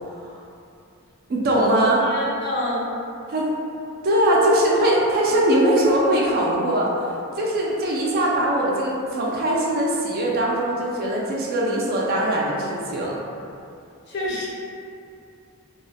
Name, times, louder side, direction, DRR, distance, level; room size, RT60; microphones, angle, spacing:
voice 1, 1.3-2.0 3.3-3.5 4.0-13.2, right 1 dB, 40° right, -4 dB, 0.3 m, -21 dB
voice 2, 2.0-2.9 4.5-4.6 14.1-14.5, left 1 dB, 50° left, -5 dB, 0.5 m, -28 dB
2.4 x 2.1 x 2.6 m, 2.5 s
head